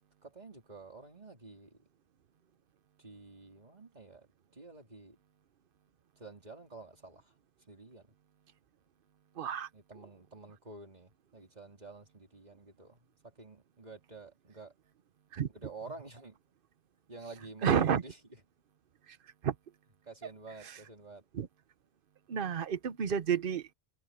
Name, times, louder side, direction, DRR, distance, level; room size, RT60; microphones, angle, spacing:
voice 1, 0.2-1.8 3.0-5.2 6.2-7.3 7.7-8.1 9.7-13.1 13.4-14.7 15.5-16.4 17.1-18.2 20.0-21.2, right 3 dB, 40° right, 3.4 m, -50 dB
voice 2, 9.4-9.7 15.3-15.5 17.6-18.0 19.1-19.2 19.4-19.5 20.6-20.8 21.3-21.5 22.3-23.7, right 8 dB, 60° right, 1.0 m, -30 dB
omnidirectional pair, 1.0 m